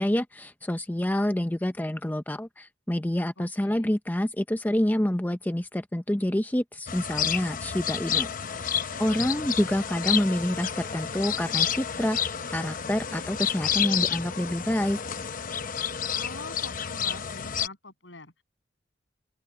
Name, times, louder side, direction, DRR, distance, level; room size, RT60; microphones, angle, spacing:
voice 1, 0.0-8.3 8.6-15.0, left 1 dB, 10° left, 0.6 m, -27 dB
voice 2, 3.4-3.9 16.2-18.3, left 3 dB, 75° left, 7.9 m, -44 dB
sound 1, 6.9-17.7, left 8 dB, 45° left, 0.9 m, -30 dB
open air
head